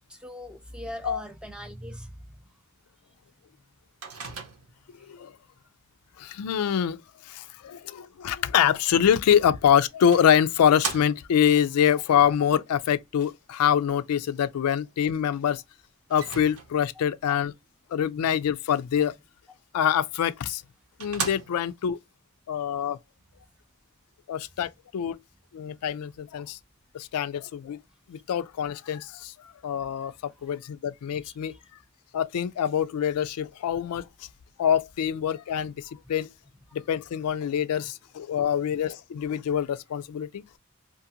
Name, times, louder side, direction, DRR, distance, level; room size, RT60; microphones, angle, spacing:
voice 1, 0.1-2.3 5.0-5.1 11.9-12.0 31.2-31.3, left 1 dB, 5° right, 0.4 m, -40 dB
Microwave oven, 4.0-4.9 9.3-9.4 10.1-11.5 16.1-17.0 20.1-20.2 20.6-20.7 21.0-21.9, right 4 dB, 75° right, 0.8 m, -36 dB
voice 2, 6.2-15.6 16.1-17.5 17.9-19.1 19.7-20.6 21.0-22.0 22.5-23.0 24.3-25.2 25.5-26.6 26.9-27.8 28.1-31.5 32.1-34.1 34.6-36.3 36.7-40.4, left 8 dB, 90° left, 0.3 m, -25 dB
2.5 x 2.5 x 2.7 m
head